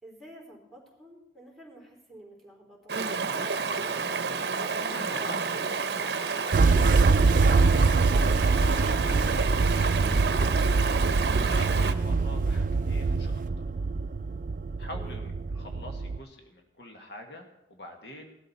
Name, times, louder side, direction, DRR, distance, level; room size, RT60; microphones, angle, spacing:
voice 1, 0.0-3.0 14.9-15.2, right 1 dB, ahead, -3 dB, 3.6 m, -50 dB
Stream, 2.9-11.9, right 5 dB, 70° right, 0.7 m, -30 dB
voice 2, 4.8-7.9 8.4-10.7 11.3-13.4 14.8-18.4, left 1 dB, 70° left, 3 dB, 1.6 m, -45 dB
sound 1, 6.5-16.2, right 4 dB, 50° right, 0.4 m, -24 dB
18.0 x 12.5 x 4.2 m, 0.89 s
head